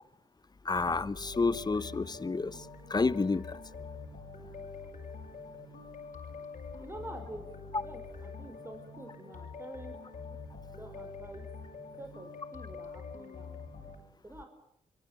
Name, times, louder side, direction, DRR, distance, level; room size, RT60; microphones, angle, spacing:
voice 1, 0.6-2.5 2.9-3.5, left 3 dB, 30° left, 1.1 m, -29 dB
sound 1, 1.1-14.0, left 4 dB, 70° left, 7.4 m, -45 dB
voice 2, 6.8-9.9 10.7-11.4 12.0-13.6 14.2-14.5, right 1 dB, 15° right, 5.5 m, -47 dB
27.0 x 23.0 x 9.3 m
cardioid pair, 65°, 14 cm